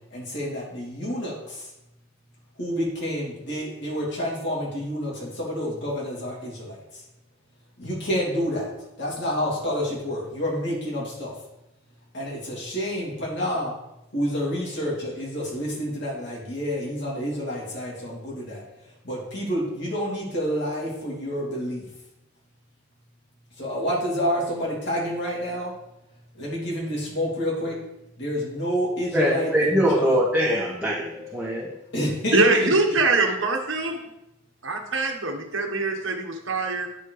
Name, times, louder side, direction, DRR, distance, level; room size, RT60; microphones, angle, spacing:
voice 1, 0.1-1.7 2.6-7.0 7.8-8.7 9.0-11.3 12.1-13.8 14.1-18.6 19.0-21.8 23.6-25.7 26.4-27.8 28.2-30.2 31.9-32.7, equal, 55° left, -5 dB, 3.1 m, -28 dB
voice 2, 29.1-31.7, equal, 5° right, -8 dB, 1.4 m, -22 dB
voice 3, 32.3-34.0 34.6-36.9, right 3 dB, 65° right, 2 dB, 1.4 m, -23 dB
9.9 x 4.4 x 4.9 m, 0.89 s
head